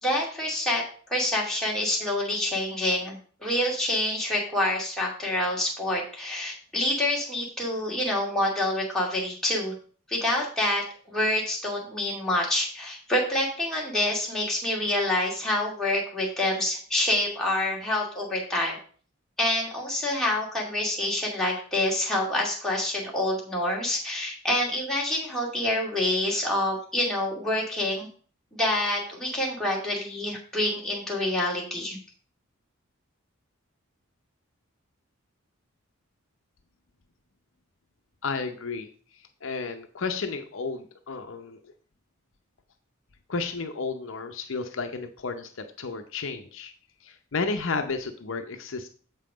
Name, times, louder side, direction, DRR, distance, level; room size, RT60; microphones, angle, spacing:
voice 1, 0.0-0.8 1.1-9.7 10.1-18.8 19.4-28.1 28.5-32.0, left 1 dB, ahead, -4 dB, 2.4 m, -27 dB
voice 2, 38.2-38.9 39.4-41.6 43.3-46.7 47.0-48.9, left 4 dB, 65° left, 7 dB, 0.7 m, -32 dB
7.6 x 5.6 x 5.0 m, 0.42 s
head